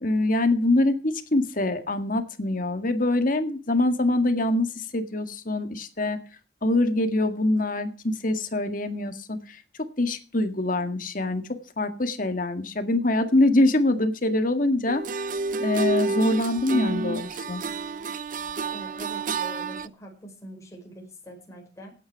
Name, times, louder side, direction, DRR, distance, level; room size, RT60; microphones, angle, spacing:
voice 1, 0.0-6.2 6.6-9.6 10.0-11.4 11.8-15.0 15.6-17.6, left 2 dB, 50° left, 8 dB, 1.9 m, -24 dB
sound 1, 14.9-19.9, right 3 dB, 50° right, 0.6 m, -29 dB
voice 2, 18.7-21.9, right 1 dB, 20° left, 0 dB, 5.5 m, -44 dB
17.0 x 9.1 x 4.7 m, 0.36 s
head